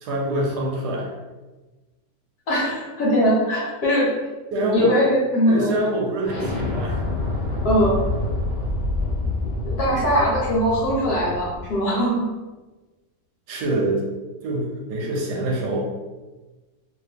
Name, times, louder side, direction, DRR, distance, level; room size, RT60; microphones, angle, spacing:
voice 1, 0.0-1.1 4.5-5.0 5.5-7.0 13.5-14.0 14.4-15.9, right 1 dB, 75° right, 0 dB, 1.2 m, -25 dB
voice 2, 2.5-4.1 4.7-5.7 7.6-8.0 9.6-12.2, equal, 65° left, -5 dB, 1.5 m, -21 dB
Explosion, 6.2-11.8, left 2 dB, 50° left, 0.5 m, -27 dB
2.9 x 2.8 x 3.4 m, 1.2 s
omnidirectional pair, 1.9 m